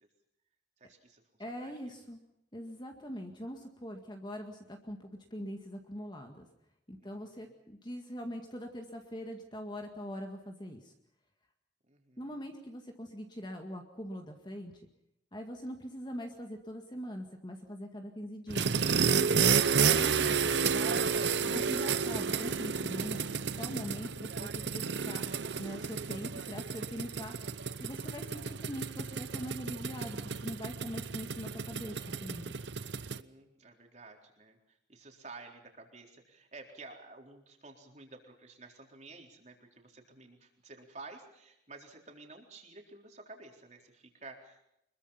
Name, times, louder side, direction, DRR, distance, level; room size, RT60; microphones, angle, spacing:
voice 1, 0.8-1.2 1.5-1.9 3.4-3.5 7.0-7.5 11.9-12.4 32.8-44.7, right 3 dB, 40° right, 3 dB, 4.0 m, -52 dB
voice 2, 1.4-2.2 2.5-6.5 6.9-10.9 12.2-14.7 15.3-18.7 19.2-19.5 19.9-21.1 21.4-25.3 25.6-27.3 27.8-32.5, equal, 25° left, 4 dB, 2.0 m, -42 dB
sound 1, 18.5-33.2, right 6 dB, 65° right, 0.8 m, -31 dB
25.0 x 22.0 x 5.7 m, 0.81 s
head